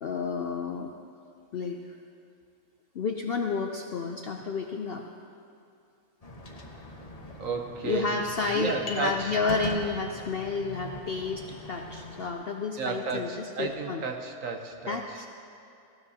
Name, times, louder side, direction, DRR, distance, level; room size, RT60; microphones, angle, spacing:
voice 1, 0.0-0.9 1.5-1.8 3.0-5.0 7.8-14.0 14.9-15.3, left 4 dB, 60° left, 3 dB, 0.6 m, -31 dB
sound 1, 6.2-12.3, left 1 dB, 30° left, 0.9 m, -41 dB
voice 2, 7.4-8.2 8.5-9.4 12.8-15.2, right 5 dB, 65° right, 4 dB, 1.3 m, -33 dB
18.5 x 15.5 x 2.8 m, 2.6 s
omnidirectional pair, 1.6 m